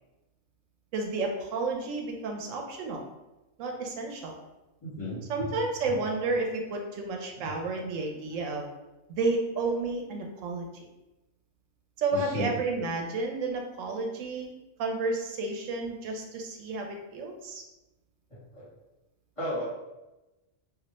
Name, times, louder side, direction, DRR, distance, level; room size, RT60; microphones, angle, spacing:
voice 1, 0.9-3.0 3.6-4.4 5.3-8.7 9.1-10.8 12.0-14.5 14.8-17.6, right 3 dB, 90° right, 2 dB, 0.9 m, -31 dB
voice 2, 4.8-5.5 5.8-6.0 7.4-7.5 12.1-12.5 18.3-18.7 19.4-19.6, left 1 dB, 30° left, -9 dB, 1.1 m, -35 dB
2.4 x 2.1 x 3.9 m, 1.0 s
omnidirectional pair, 1.3 m